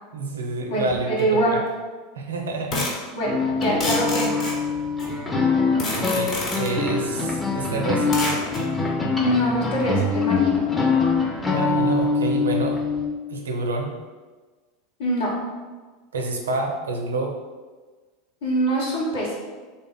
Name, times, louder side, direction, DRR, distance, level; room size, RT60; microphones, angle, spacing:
voice 1, 0.1-1.6 2.1-2.9 6.0-8.1 11.5-12.8 13.3-14.0 16.1-17.4, right 3 dB, 75° right, 3 dB, 0.5 m, -28 dB
voice 2, 0.7-1.6 3.1-4.4 9.2-10.6 15.0-15.3 18.4-19.3, right 1 dB, 70° left, -7 dB, 1.0 m, -24 dB
sound 1, 1.2-1.3 2.7-3.0 3.6-5.1 5.8-6.8 8.1-8.6, left 2 dB, 35° left, 1.0 m, -28 dB
sound 2, 3.3-13.1, left 4 dB, 10° left, 0.6 m, -23 dB
3.3 x 2.2 x 3.8 m, 1.3 s
figure-of-eight pair, 85°, 0 cm